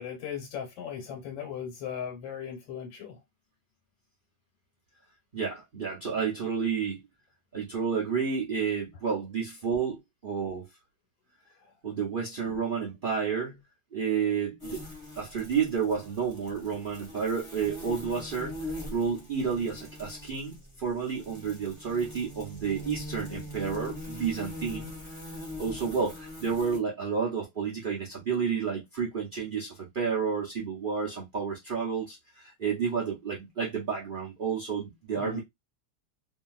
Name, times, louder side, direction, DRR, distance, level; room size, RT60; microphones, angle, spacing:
voice 1, 0.0-3.2 11.6-11.7 35.1-35.4, left 8 dB, 80° left, 1.6 m, -38 dB
voice 2, 5.3-7.0 7.5-10.7 11.8-13.6 13.9-14.8 15.2-24.9 25.6-35.4, right 6 dB, 70° right, 0.4 m, -31 dB
sound 1, 14.6-26.8, left 1 dB, 20° left, 0.9 m, -42 dB
2.9 x 2.7 x 2.3 m
omnidirectional pair, 2.0 m